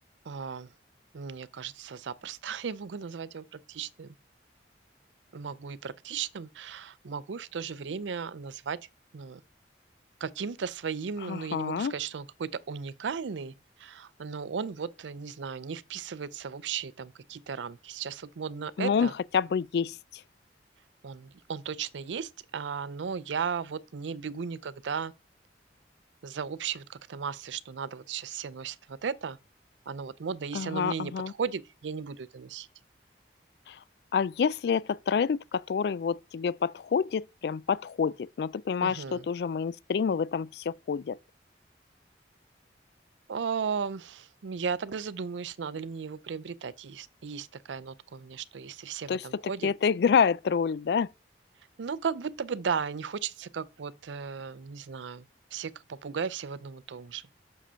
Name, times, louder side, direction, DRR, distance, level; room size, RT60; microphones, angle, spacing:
voice 1, 0.3-0.7 1.1-4.2 5.3-8.8 9.1-9.4 10.2-13.5 13.8-19.1 21.0-25.1 26.2-29.4 29.9-32.7 38.8-39.2 43.3-49.7 51.8-55.2 55.5-57.2, right 6 dB, 85° right, 0.5 m, -36 dB
voice 2, 11.3-11.9 18.8-20.0 30.5-31.3 33.7-33.8 34.1-41.2 49.1-49.2 49.6-51.1, left 6 dB, 60° left, 0.3 m, -28 dB
6.6 x 5.0 x 5.6 m
head